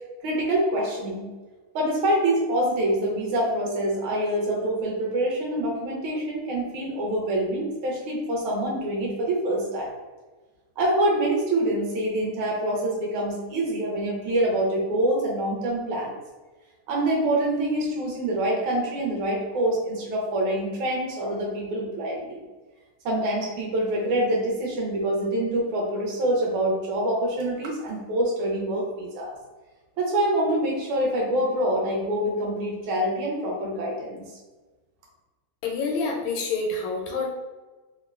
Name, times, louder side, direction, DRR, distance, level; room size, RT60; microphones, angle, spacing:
voice 1, 0.2-1.3 1.7-9.9 10.8-16.1 16.9-22.4 23.0-29.4 30.0-34.2, right 1 dB, 80° right, -3 dB, 1.6 m, -25 dB
voice 2, 35.6-37.3, left 3 dB, 75° left, 0 dB, 1.2 m, -27 dB
3.6 x 2.1 x 2.4 m, 1.3 s
omnidirectional pair, 2.3 m